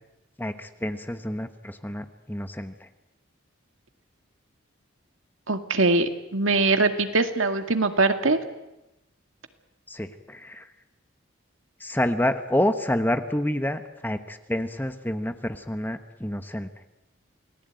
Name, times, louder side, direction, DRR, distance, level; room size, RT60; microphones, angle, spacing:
voice 1, 0.4-2.9 9.9-10.7 11.8-16.7, left 1 dB, 10° left, 9 dB, 1.1 m, -28 dB
voice 2, 5.5-8.4, right 3 dB, 75° right, 7 dB, 2.1 m, -22 dB
28.5 x 18.5 x 9.1 m, 0.95 s
head